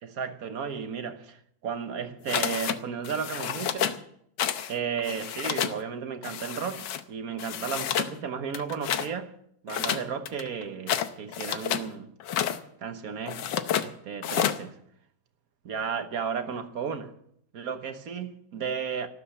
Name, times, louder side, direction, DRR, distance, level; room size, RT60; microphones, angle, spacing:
voice 1, 0.0-4.0 4.7-9.3 9.6-12.1 12.8-13.5 13.8-14.8 15.6-17.1 17.5-19.1, right 6 dB, 50° right, 1.3 m, -34 dB
sound 1, 2.3-2.8 3.0-4.0 4.4-4.7 5.0-5.8 6.2-7.0 7.4-8.1 8.5-9.1 9.7-11.9 12.2-12.6 13.3-13.9 14.2-14.6, left 10 dB, 65° left, 1.3 m, -30 dB
13.0 x 12.5 x 7.1 m
omnidirectional pair, 2.3 m